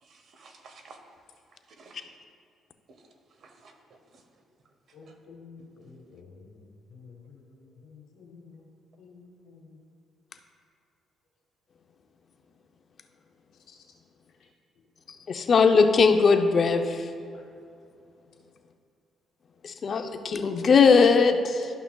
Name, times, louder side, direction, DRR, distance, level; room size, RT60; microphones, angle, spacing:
voice 1, 0.0-1.0 1.7-2.1 2.9-3.1 3.4-4.2 5.1-5.2 5.6-5.7, right 3 dB, 60° right, 5 dB, 0.9 m, -53 dB
voice 2, 4.9-8.7 9.0-9.8 13.7-13.8, left 4 dB, 80° left, 0 dB, 1.4 m, -51 dB
voice 3, 15.3-17.1 19.6-21.7, left 5 dB, 50° left, 7 dB, 0.6 m, -20 dB
12.0 x 5.7 x 2.3 m, 2.4 s
cardioid pair, 90°, 0 cm